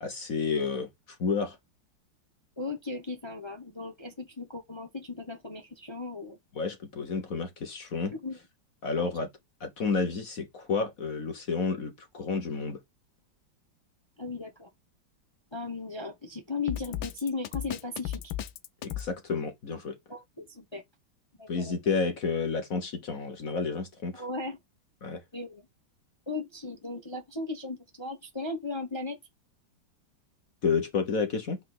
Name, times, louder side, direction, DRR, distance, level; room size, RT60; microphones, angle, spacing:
voice 1, 0.0-1.6 6.6-8.1 8.8-9.3 9.6-12.8 18.8-20.0 21.5-24.2 25.0-25.2 30.6-31.6, left 5 dB, 50° left, 1.5 m, -30 dB
voice 2, 2.6-6.4 8.1-8.4 9.0-9.1 14.2-14.7 15.5-18.3 20.1-20.8 21.4-21.7 24.1-24.6 25.3-25.7 26.3-29.2, left 3 dB, 20° left, 0.9 m, -36 dB
Drum kit, 16.7-19.1, left 12 dB, 80° left, 1.4 m, -35 dB
5.8 x 4.5 x 6.1 m
omnidirectional pair, 2.1 m